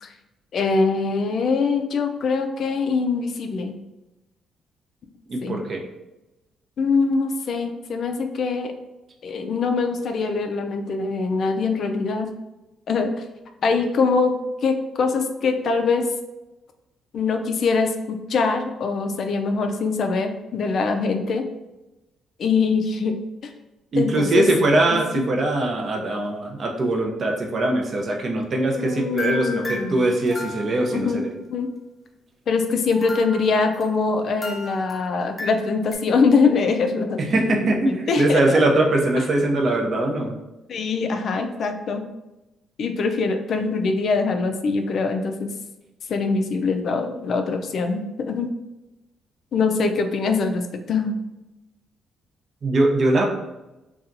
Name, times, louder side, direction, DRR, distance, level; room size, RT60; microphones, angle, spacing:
voice 1, 0.5-3.8 5.4-5.6 6.8-8.7 9.2-12.3 12.9-13.2 13.6-14.4 14.6-16.1 17.1-21.5 22.4-23.1 23.4-23.5 24.0-24.5 24.9-25.3 28.7-30.1 30.9-31.7 32.5-38.6 40.7-42.0 42.8-45.5 46.1-48.5 49.5-51.2, left 4 dB, 60° left, 5 dB, 0.3 m, -23 dB
voice 2, 5.3-5.8 23.9-31.3 37.2-40.3 52.6-53.2, right 2 dB, 50° right, 1 dB, 0.5 m, -21 dB
sound 1, 29.2-31.1 32.9-35.9, left 1 dB, 30° left, 0.7 m, -35 dB
2.8 x 2.3 x 2.5 m, 0.99 s
cardioid pair, 90°, 0 cm